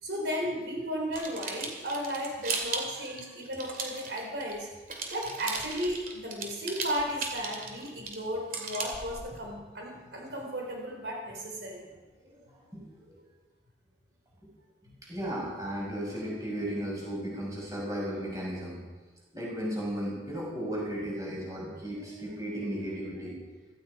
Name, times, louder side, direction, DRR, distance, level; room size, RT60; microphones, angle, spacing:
voice 1, 0.0-4.7 5.1-11.8 14.9-15.0, equal, 70° right, 0 dB, 3.8 m, -34 dB
sound 1, 1.1-4.6 4.9-9.4, right 4 dB, 50° right, 2.6 m, -36 dB
voice 2, 15.1-18.8 19.3-23.4, equal, 20° right, -4 dB, 5.7 m, -35 dB
17.0 x 15.5 x 4.9 m, 1.3 s
head